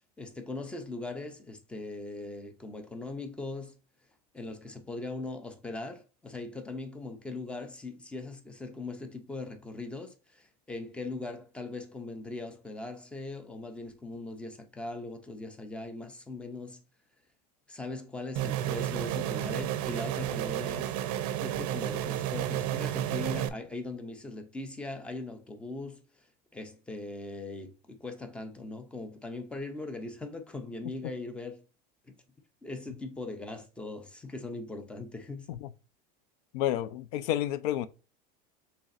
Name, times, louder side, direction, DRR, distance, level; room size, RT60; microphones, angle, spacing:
voice 1, 0.2-3.8 4.3-16.8 17.7-20.9 21.4-26.0 26.5-31.6 32.6-35.5, left 2 dB, 5° left, 0.4 m, -40 dB
sound 1, 18.4-23.5, right 11 dB, 70° right, 0.5 m, -31 dB
voice 2, 36.5-37.9, left 12 dB, 70° left, 0.4 m, -30 dB
6.7 x 3.2 x 2.4 m
cardioid pair, 180°, 20 cm